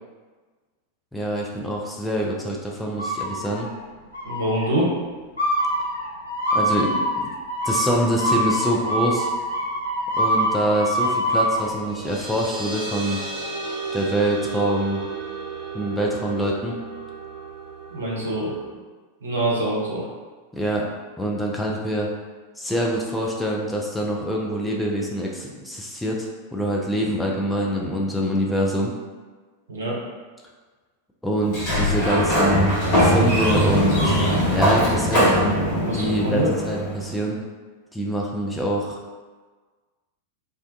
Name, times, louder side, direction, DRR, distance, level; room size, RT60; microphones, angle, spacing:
voice 1, 1.1-3.7 6.5-7.3 7.6-9.3 10.1-13.2 13.9-15.0 15.7-16.7 20.5-20.9 21.2-22.1 22.6-28.9 31.2-34.2 34.5-35.3 35.9-37.4 37.9-39.0, equal, 5° left, -2 dB, 0.3 m, -25 dB
sound 1, 3.0-3.7 4.1-4.7 5.4-11.7, equal, 75° left, 0.7 m, -24 dB
voice 2, 4.2-4.9 17.9-18.6 19.2-20.1 29.7-30.0 35.8-36.5, right 1 dB, 70° right, -4 dB, 0.6 m, -25 dB
sound 2, 11.5-18.6, right 4 dB, 45° right, 1.1 m, -34 dB
Sliding door, 31.4-37.1, equal, 40° left, 0.9 m, -21 dB
2.3 x 2.1 x 2.6 m, 1.4 s
figure-of-eight pair, 90°, 0 cm